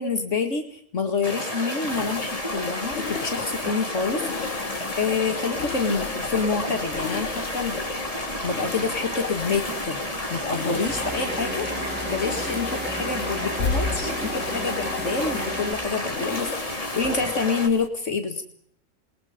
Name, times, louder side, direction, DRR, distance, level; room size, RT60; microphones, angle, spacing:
voice 1, 0.0-4.7 5.0-7.8 8.4-18.4, left 4 dB, 70° left, 6 dB, 2.3 m, -28 dB
sound 1, 1.2-17.7, left 1 dB, 25° left, 3.2 m, -31 dB
sound 2, 1.9-17.9, left 5 dB, 50° left, 1.5 m, -36 dB
sound 3, 6.3-15.7, right 1 dB, 10° right, 1.5 m, -37 dB
28.0 x 20.5 x 5.1 m, 0.66 s
omnidirectional pair, 1.3 m